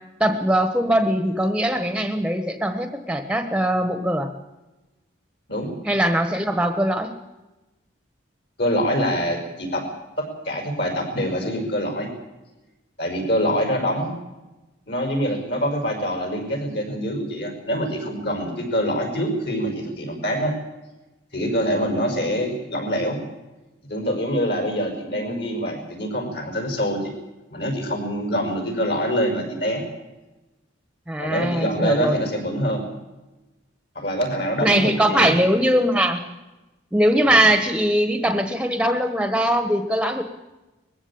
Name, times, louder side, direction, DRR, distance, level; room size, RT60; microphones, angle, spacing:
voice 1, 0.2-4.3 5.8-7.1 31.1-32.2 34.6-36.2 36.9-40.2, right 1 dB, 5° right, 8 dB, 1.2 m, -21 dB
voice 2, 8.6-9.9 10.2-12.1 13.0-14.1 14.9-20.5 21.3-23.2 23.9-27.1 27.5-29.8 31.2-32.8 34.0-35.3 37.3-37.4, equal, 55° left, 4 dB, 5.7 m, -25 dB
21.0 x 15.5 x 8.7 m, 1.1 s
head